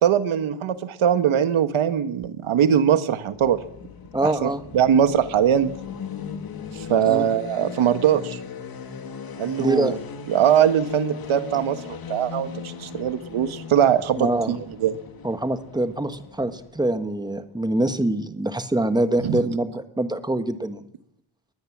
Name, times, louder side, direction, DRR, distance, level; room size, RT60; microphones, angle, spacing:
voice 1, 0.0-3.6 4.2-5.7 6.7-8.4 9.4-10.0 10.3-14.9 19.2-19.4, right 9 dB, 80° right, 11 dB, 1.6 m, -21 dB
sound 1, 3.2-17.1, left 6 dB, 50° left, 2.1 m, -38 dB
voice 2, 4.1-4.6 7.1-7.2 9.6-10.0 14.2-14.6 15.2-20.8, right 1 dB, 10° right, 10 dB, 1.3 m, -24 dB
22.0 x 19.5 x 7.4 m, 0.74 s
wide cardioid pair, 175°, 47 cm